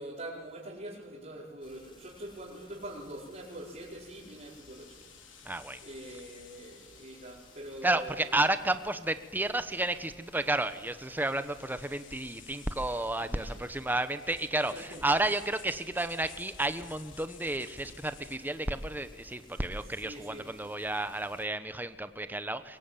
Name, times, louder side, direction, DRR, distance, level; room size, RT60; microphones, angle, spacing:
voice 1, 0.0-5.0 5.3-5.5 5.8-8.4 13.2-13.6 14.7-15.0 20.0-20.5, right 1 dB, 40° right, -6 dB, 5.0 m, -44 dB
sound 1, 1.6-21.5, left 2 dB, 25° left, 4.0 m, -59 dB
sound 2, 3.3-18.7, left 6 dB, 90° left, 2.8 m, -55 dB
voice 2, 5.4-5.8 7.8-22.8, right 2 dB, 10° right, 10 dB, 1.0 m, -32 dB
23.0 x 22.5 x 9.1 m, 1.4 s
head